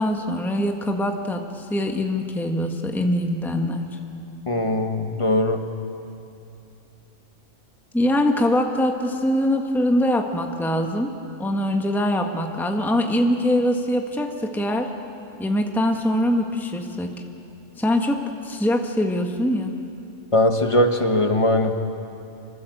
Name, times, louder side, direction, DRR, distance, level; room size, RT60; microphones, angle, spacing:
voice 1, 0.0-3.9 7.9-11.1 11.4-14.9 15.4-17.2 17.8-18.2 18.4-19.7, left 1 dB, ahead, 3 dB, 1.3 m, -23 dB
voice 2, 4.5-5.6 20.3-21.8, left 1 dB, 25° left, 5 dB, 1.4 m, -20 dB
25.5 x 22.5 x 7.9 m, 2.7 s
omnidirectional pair, 1.3 m